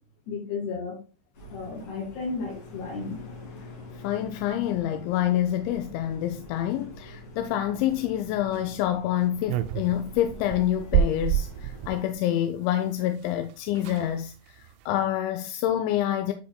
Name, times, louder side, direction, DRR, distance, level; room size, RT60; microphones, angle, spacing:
voice 1, 0.3-1.0 1.5-3.2, left 4 dB, 60° left, 4.0 m, -33 dB
sound 1, 1.3-12.1, left 1 dB, 45° left, 3.0 m, -46 dB
voice 2, 4.0-16.3, left 12 dB, 80° left, 2.8 m, -27 dB
sound 2, 9.5-12.0 13.2-13.3 13.5-13.6 13.8-14.1 14.6-14.9, right 10 dB, 85° right, 2.7 m, -28 dB
12.0 x 4.9 x 2.2 m
omnidirectional pair, 5.6 m